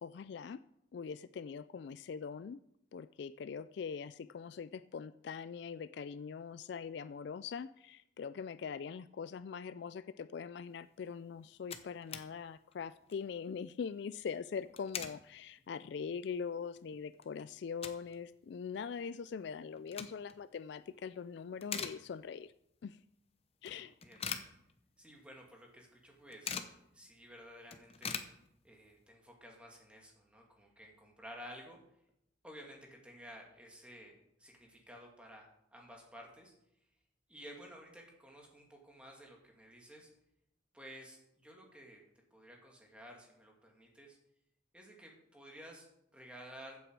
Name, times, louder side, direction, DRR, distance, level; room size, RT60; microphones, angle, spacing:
voice 1, 0.0-0.6 0.9-2.6 2.9-22.5 22.8-23.0 23.6-23.9, left 6 dB, 60° left, 15 dB, 0.3 m, -42 dB
sound 1, 11.1-11.2 11.4-12.3 12.7-12.8 13.0-13.3 14.5-15.2 15.7-15.8 16.4-16.5 16.8-18.2 18.5-18.6 19.6-20.4 20.9-21.2 21.5-22.5 22.9-23.0 23.7-25.1 25.4-25.5 25.8-26.8 27.2-27.3 27.5-28.9, left 6 dB, 30° left, 0.8 m, -43 dB
voice 2, 23.7-24.3 25.0-28.3 28.6-31.8 32.4-36.5 37.3-40.1 40.7-42.0 42.3-44.2 44.7-45.9 46.1-46.8, equal, 5° right, 0 dB, 2.3 m, -53 dB
14.5 x 8.0 x 4.7 m, 0.79 s
head